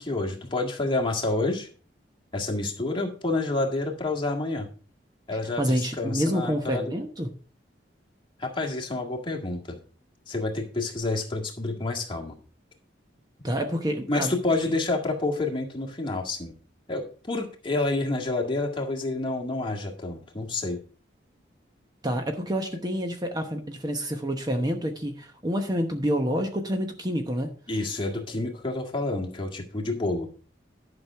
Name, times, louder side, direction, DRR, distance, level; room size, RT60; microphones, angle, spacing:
voice 1, 0.0-1.7 2.3-4.7 5.3-6.9 8.4-9.8 10.3-12.3 14.1-16.5 16.9-20.8 27.7-30.3, left 2 dB, 25° left, 1 dB, 1.9 m, -28 dB
voice 2, 5.6-7.3 13.4-14.3 22.0-27.5, equal, 20° right, 5 dB, 0.9 m, -28 dB
11.5 x 6.1 x 4.6 m, 0.40 s
head